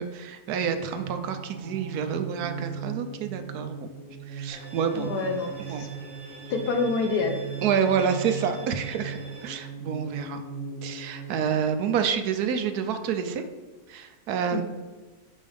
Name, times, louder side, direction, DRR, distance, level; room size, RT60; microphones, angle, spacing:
voice 1, 0.0-3.9 4.3-5.1 5.6-5.8 7.6-10.4 10.8-13.4 13.9-14.6, right 7 dB, 75° right, 7 dB, 1.1 m, -28 dB
sound 1, 0.6-11.4, right 6 dB, 60° right, 1.3 m, -38 dB
Bowed string instrument, 4.5-9.5, right 3 dB, 20° right, 1.6 m, -46 dB
voice 2, 4.9-5.9 6.5-7.4 14.5-14.6, left 4 dB, 80° left, 4 dB, 1.4 m, -27 dB
7.3 x 5.5 x 3.5 m, 1.3 s
omnidirectional pair, 1.7 m